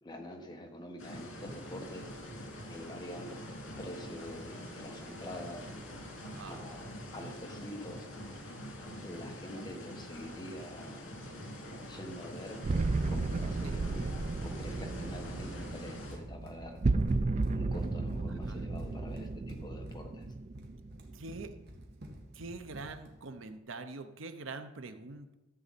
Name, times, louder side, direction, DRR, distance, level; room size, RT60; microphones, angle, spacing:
voice 1, 0.0-2.1 2.7-3.4 3.8-5.7 6.4-6.9 7.1-8.1 9.0-11.1 11.9-12.6 13.1-16.8 17.5-20.3, left 1 dB, 20° left, 3 dB, 1.3 m, -45 dB
sound 1, 1.0-16.2, equal, 75° left, 2.5 m, -45 dB
voice 2, 6.2-6.6 10.3-10.4 13.6-13.7 18.3-18.6 21.1-21.6 22.3-25.3, right 3 dB, 80° right, 9 dB, 0.8 m, -44 dB
sound 2, 12.6-21.6, right 3 dB, 35° right, 0.4 m, -33 dB
Run, 16.1-23.1, equal, 55° right, 1.7 m, -49 dB
13.5 x 7.9 x 4.2 m, 1.0 s
head